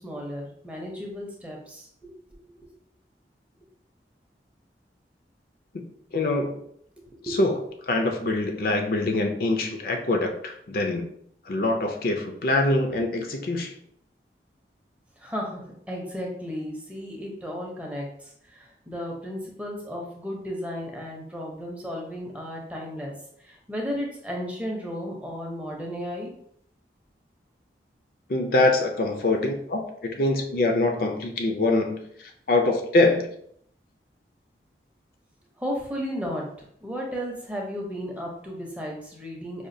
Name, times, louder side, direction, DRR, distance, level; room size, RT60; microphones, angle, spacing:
voice 1, 0.0-2.1 2.4-2.6 7.3-7.4 15.2-23.1 23.4-26.3 29.3-29.4 35.6-36.5 36.8-39.7, equal, 10° right, -1 dB, 0.6 m, -34 dB
voice 2, 6.1-6.6 7.2-7.5 7.9-11.0 11.5-13.7 28.3-33.3, left 2 dB, 55° left, 4 dB, 0.4 m, -24 dB
4.9 x 2.3 x 2.6 m, 0.67 s
head